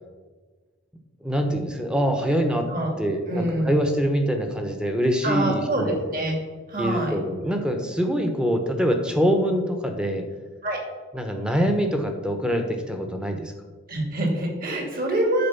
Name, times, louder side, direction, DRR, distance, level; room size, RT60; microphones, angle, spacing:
voice 1, 1.2-2.7 3.0-6.0 6.8-10.2 11.1-13.5, equal, 5° right, 4 dB, 1.0 m, -24 dB
voice 2, 3.3-3.9 5.2-6.4 6.7-7.2 10.6-10.8 13.9-15.5, right 1 dB, 45° right, 1 dB, 2.5 m, -25 dB
10.5 x 4.8 x 7.0 m, 1.4 s
head